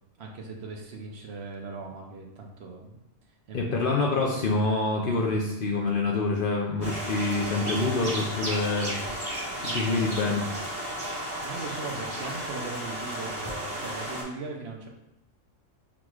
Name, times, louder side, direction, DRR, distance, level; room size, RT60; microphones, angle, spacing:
voice 1, 0.2-2.9 3.5-4.2 9.5-10.2 11.3-14.9, right 3 dB, 60° right, 0 dB, 0.9 m, -39 dB
voice 2, 3.5-9.0 9.5-10.5, left 3 dB, 55° left, -2 dB, 0.6 m, -26 dB
sound 1, 6.8-14.2, right 1 dB, 20° right, 1.2 m, -33 dB
6.0 x 3.0 x 2.4 m, 0.85 s
omnidirectional pair, 1.3 m